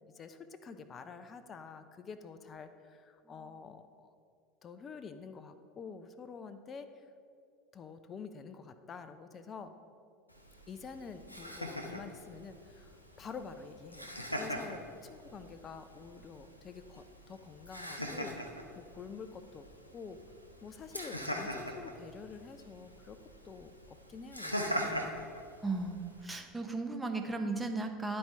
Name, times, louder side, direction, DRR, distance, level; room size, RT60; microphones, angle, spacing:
voice 1, 0.1-4.1 4.6-7.0 7.7-9.7 10.7-14.1 14.4-19.7 19.9-20.2 20.6-23.2 23.4-25.0, left 5 dB, 30° left, 10 dB, 0.5 m, -48 dB
Laughter, 10.3-26.3, equal, 90° left, 0.6 m, -42 dB
voice 2, 25.6-28.2, right 3 dB, 10° right, 4 dB, 0.7 m, -36 dB
11.5 x 4.3 x 3.3 m, 2.3 s
figure-of-eight pair, 75°, 0 cm